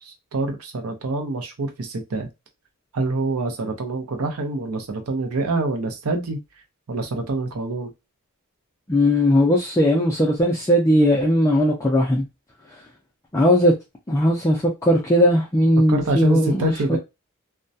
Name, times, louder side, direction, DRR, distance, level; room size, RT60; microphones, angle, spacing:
voice 1, 0.0-2.3 2.9-6.4 6.9-7.9 15.9-17.0, right 2 dB, 70° right, 0.6 m, -26 dB
voice 2, 8.9-12.2 13.3-13.7 14.1-17.0, equal, 15° left, 0.4 m, -18 dB
2.2 x 2.1 x 2.6 m
head